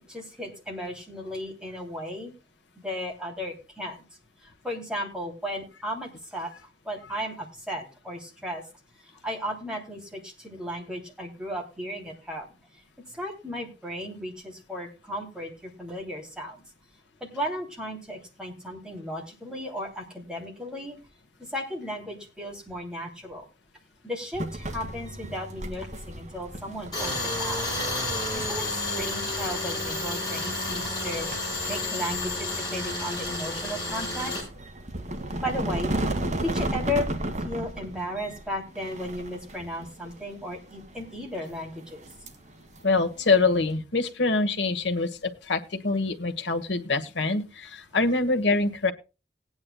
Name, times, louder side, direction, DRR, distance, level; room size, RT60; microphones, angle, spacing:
voice 1, 0.1-2.3 2.8-4.0 4.4-6.5 6.8-8.6 9.0-12.5 13.1-16.6 17.2-21.0 21.4-23.4 24.0-27.6 28.3-31.3 31.7-34.3 35.4-35.9 36.4-37.1 37.4-42.0, equal, 5° right, -1 dB, 3.0 m, -35 dB
sound 1, 24.3-43.7, right 1 dB, 40° right, 1.6 m, -36 dB
Tools, 26.9-34.4, left 2 dB, 25° left, 5.2 m, -30 dB
voice 2, 42.8-48.9, left 3 dB, 80° left, 7 dB, 1.3 m, -25 dB
19.0 x 9.7 x 2.3 m, 0.29 s
head